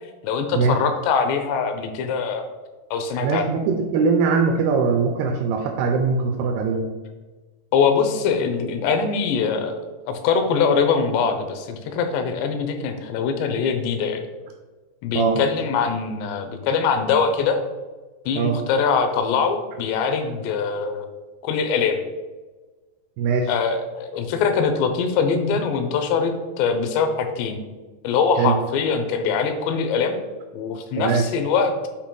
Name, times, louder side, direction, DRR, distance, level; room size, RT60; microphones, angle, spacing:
voice 1, 0.2-2.5 2.9-3.5 7.7-14.2 15.0-17.6 18.3-21.1 21.4-22.0 23.5-27.6 28.0-30.2 30.5-31.9, left 5 dB, 85° left, 6 dB, 2.9 m, -23 dB
voice 2, 3.2-6.9 15.1-15.4 18.4-18.6 23.2-23.5 28.4-28.6 31.0-31.2, right 5 dB, 80° right, 4 dB, 2.4 m, -21 dB
8.4 x 2.9 x 5.2 m, 1.3 s
omnidirectional pair, 4.9 m